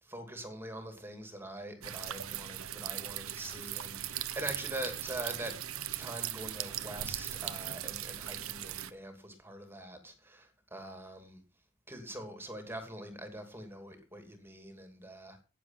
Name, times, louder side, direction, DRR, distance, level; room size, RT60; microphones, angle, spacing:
voice 1, 0.1-5.6 5.9-11.4 11.9-15.4, right 1 dB, 10° right, 2.8 m, -43 dB
sound 1, 1.8-8.9, right 11 dB, 75° right, 1.0 m, -39 dB
18.0 x 7.4 x 5.8 m
head